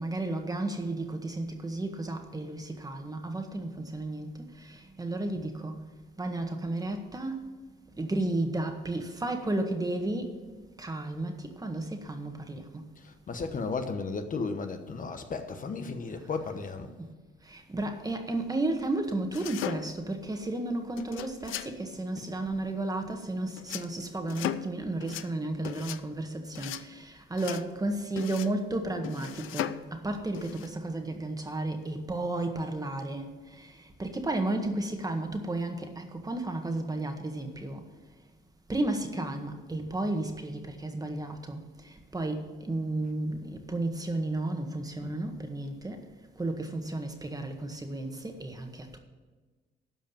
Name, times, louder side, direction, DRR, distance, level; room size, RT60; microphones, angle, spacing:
voice 1, 0.0-5.8 6.2-7.5 8.0-10.3 10.8-12.8 17.0-17.1 17.5-33.7 34.0-37.8 38.7-46.0 46.4-49.0, right 2 dB, 20° right, 1.7 m, -33 dB
voice 2, 13.0-16.9 22.2-22.4 45.0-45.1, left 4 dB, 45° left, 1.0 m, -35 dB
sound 1, 19.3-20.1 21.0-21.7 23.6-23.9 24.3-24.7 25.0-25.3 25.6-26.0 26.5-26.8 27.4-27.6 28.2-28.6 29.0-29.9 30.3-30.7, left 12 dB, 90° left, 0.6 m, -37 dB
12.5 x 5.1 x 8.7 m
cardioid pair, 90°, 20 cm